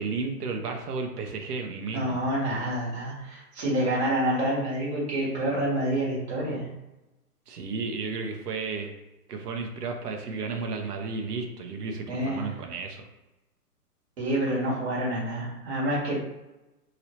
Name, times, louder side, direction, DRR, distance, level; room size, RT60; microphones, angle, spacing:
voice 1, 0.0-2.2 7.5-8.9 9.3-13.1, right 4 dB, 70° right, 3 dB, 0.8 m, -33 dB
voice 2, 1.9-6.7 12.1-12.5 14.2-16.1, right 1 dB, 40° right, -5 dB, 1.5 m, -28 dB
3.0 x 2.8 x 3.0 m, 1.0 s
hypercardioid pair, 155°, 48 cm